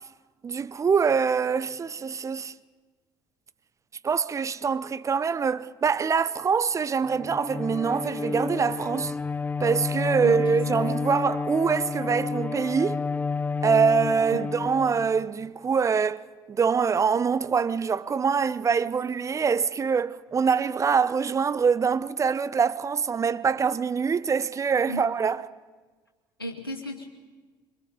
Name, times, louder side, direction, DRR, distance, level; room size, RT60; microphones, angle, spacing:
voice 1, 0.4-2.5 4.0-9.1 9.6-13.0 13.6-25.4, right 6 dB, 25° right, 0.7 m, -24 dB
Bowed string instrument, 7.1-15.5, left 4 dB, 15° left, 0.7 m, -30 dB
voice 2, 10.2-10.7 14.3-14.5 24.9-25.1 26.4-27.1, left 1 dB, 85° left, 2.5 m, -35 dB
26.0 x 26.0 x 5.3 m
figure-of-eight pair, 55°, 12 cm